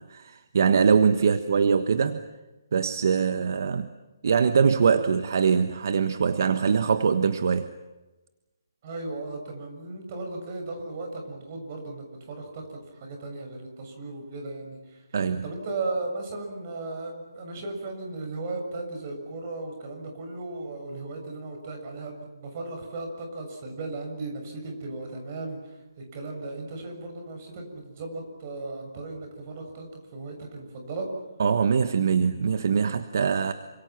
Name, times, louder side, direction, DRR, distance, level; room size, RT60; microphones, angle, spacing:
voice 1, 0.0-2.2 2.7-3.9 4.2-7.7 15.1-15.4 31.4-33.5, right 6 dB, 55° right, 10 dB, 1.4 m, -23 dB
voice 2, 8.8-15.0 15.4-31.1, right 2 dB, 30° right, 3 dB, 7.2 m, -36 dB
28.5 x 27.0 x 6.1 m, 1.1 s
hypercardioid pair, 170°, 2 cm